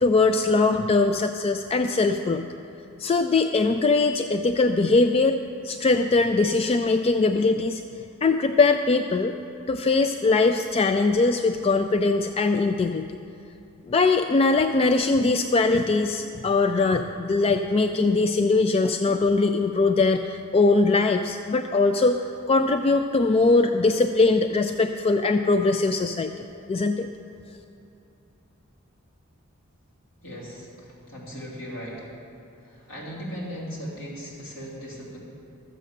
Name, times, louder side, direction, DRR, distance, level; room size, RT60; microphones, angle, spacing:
voice 1, 0.0-2.5 3.0-7.8 8.2-9.3 9.7-13.0 13.9-22.2 22.5-26.3 26.7-27.1, left 3 dB, 30° left, 7 dB, 0.3 m, -21 dB
voice 2, 30.2-32.1 32.6-35.2, equal, 70° left, -6 dB, 3.2 m, -38 dB
13.0 x 7.6 x 6.5 m, 2.7 s
head